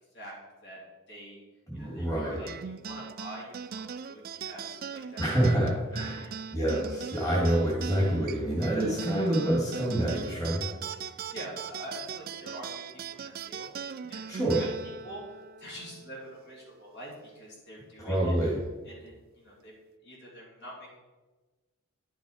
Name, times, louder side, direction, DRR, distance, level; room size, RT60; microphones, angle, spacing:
voice 1, 1.1-1.4 1.7-5.2 5.9-6.3 11.0-13.7 14.1-14.3 14.5-18.4 18.8-19.7 20.0-20.9, equal, 55° left, -4 dB, 3.2 m, -45 dB
voice 2, 1.7-2.4 5.2-10.6 14.3-14.6 18.0-18.6, right 1 dB, 15° left, -5 dB, 2.2 m, -27 dB
sound 1, 2.5-17.2, right 7 dB, 40° right, 0.3 m, -40 dB
11.0 x 6.1 x 5.0 m, 1.2 s
head